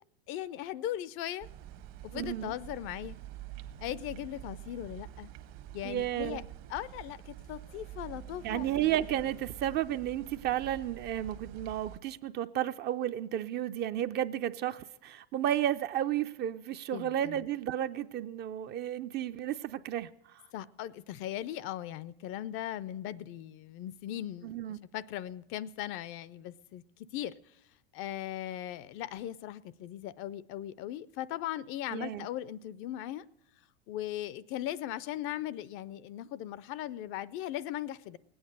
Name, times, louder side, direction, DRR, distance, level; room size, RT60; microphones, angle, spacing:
voice 1, 0.3-1.5 2.0-3.2 3.8-5.3 5.7-6.4 6.7-8.7 16.9-17.4 20.5-27.6 27.9-33.2 33.9-38.2, left 12 dB, 40° left, 0.4 m, -38 dB
sound 1, 1.4-12.0, right 12 dB, 50° right, 1.0 m, -47 dB
voice 2, 2.1-2.5 5.8-6.5 8.4-20.4 24.4-24.8 31.9-32.3, right 11 dB, 35° right, 0.4 m, -33 dB
19.0 x 8.7 x 6.5 m
hypercardioid pair, 105°, 31 cm